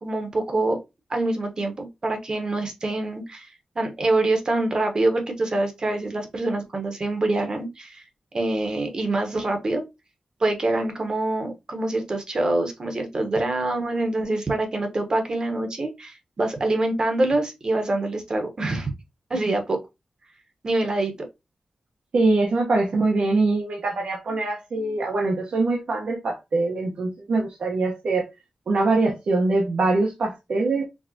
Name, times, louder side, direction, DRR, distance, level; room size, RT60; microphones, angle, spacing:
voice 1, 0.0-0.8 1.1-3.5 3.7-8.0 8.3-9.8 10.4-18.9 19.3-19.8 20.6-21.1, right 2 dB, 40° right, 1.1 m, -25 dB
voice 2, 22.1-28.3 28.7-30.9, right 3 dB, 80° right, 1.1 m, -23 dB
4.8 x 3.4 x 2.8 m
wide cardioid pair, 170°, 2 cm